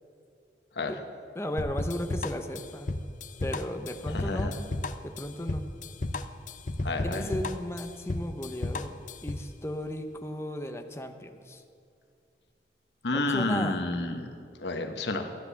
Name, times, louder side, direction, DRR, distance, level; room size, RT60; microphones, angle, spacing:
voice 1, 1.3-2.9 3.4-4.5 5.0-5.7 7.0-8.9 9.2-11.6 13.1-13.8, left 1 dB, 15° left, 5 dB, 0.8 m, -35 dB
sound 1, 1.6-9.5, left 2 dB, 45° left, 0.6 m, -33 dB
voice 2, 4.1-4.5 6.8-7.2 13.0-14.3 14.6-15.3, left 2 dB, 80° left, 5 dB, 1.1 m, -30 dB
14.5 x 10.0 x 7.0 m, 2.5 s
head